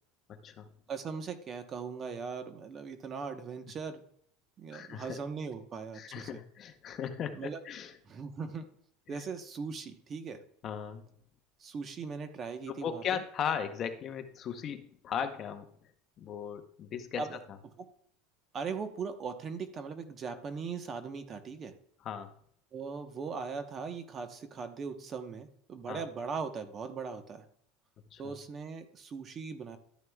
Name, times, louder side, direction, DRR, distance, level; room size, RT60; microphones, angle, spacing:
voice 1, 0.3-0.7 4.7-5.2 5.9-7.9 9.1-9.2 10.6-11.1 12.7-15.7 16.2-17.2 22.0-22.3 25.9-26.0 28.1-28.4, left 8 dB, 35° left, 8 dB, 0.8 m, -37 dB
voice 2, 0.9-4.0 4.6-6.4 7.3-7.6 8.0-8.6 9.1-10.4 11.6-13.2 17.2-17.4 18.5-21.7 22.7-27.5 28.2-29.8, right 5 dB, 30° right, 7 dB, 1.0 m, -39 dB
12.5 x 9.6 x 2.3 m, 0.62 s
supercardioid pair, 145°, 0 cm